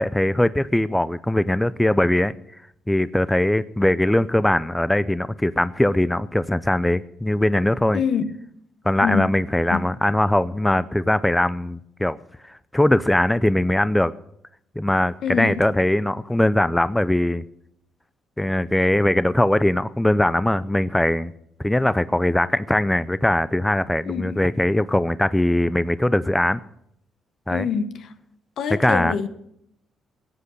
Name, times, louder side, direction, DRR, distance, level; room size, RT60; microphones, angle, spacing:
voice 1, 0.0-2.3 2.9-8.0 8.8-12.2 12.4-14.1 14.8-17.4 18.4-21.3 21.6-26.6 27.5-27.7 28.7-29.1, left 1 dB, 10° left, 0.5 m, -21 dB
voice 2, 15.2-15.6 24.1-24.3 27.5-28.1 28.6-29.3, left 7 dB, 70° left, 1.2 m, -25 dB
16.5 x 8.4 x 6.4 m
cardioid pair, 90°, 0 cm